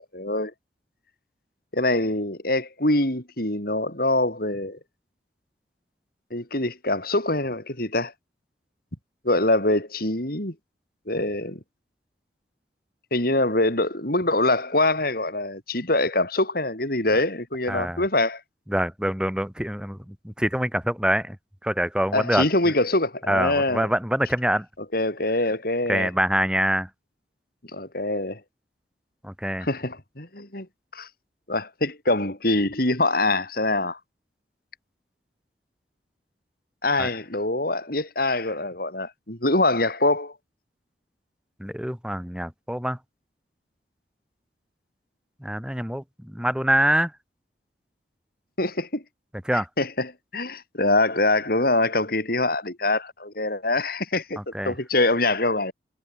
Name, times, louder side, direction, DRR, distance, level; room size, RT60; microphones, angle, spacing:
voice 1, 0.1-0.5 1.7-4.8 6.3-8.1 9.2-10.5 11.1-11.6 13.1-18.4 22.1-23.9 24.9-26.1 27.7-28.4 29.6-30.7 30.9-31.1 31.5-34.0 36.8-40.3 48.6-49.0 49.8-54.4 54.6-55.7, left 2 dB, 55° left, 5.7 m, -24 dB
voice 2, 17.7-18.0 18.7-21.4 21.6-22.5 23.3-24.7 25.9-26.9 29.2-29.7 37.0-37.1 41.6-43.0 45.4-47.1 49.5-49.7 54.4-54.7, right 1 dB, 5° right, 4.0 m, -25 dB
head